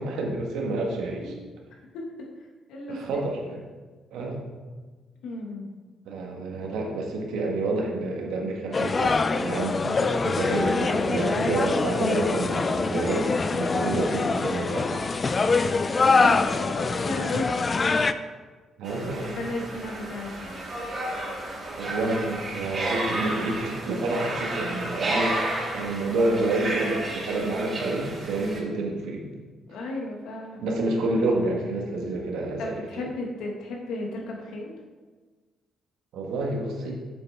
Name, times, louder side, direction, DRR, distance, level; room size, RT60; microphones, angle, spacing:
voice 1, 0.0-1.3 2.9-3.6 4.1-4.5 6.0-15.1 18.8-19.3 21.7-29.3 30.6-33.1 36.1-36.9, right 2 dB, 85° right, 0 dB, 1.5 m, -29 dB
voice 2, 1.9-2.3 2.7-3.2 5.2-5.7 10.6-11.5 15.4-17.8 19.2-20.8 29.7-30.6 32.6-34.7, left 2 dB, 85° left, -1 dB, 1.6 m, -34 dB
sound 1, 8.7-18.1, left 4 dB, 35° left, 0.4 m, -24 dB
sound 2, 18.8-28.6, right 1 dB, 40° right, 2.2 m, -32 dB
7.8 x 7.0 x 3.5 m, 1.4 s
cardioid pair, 90°, 0 cm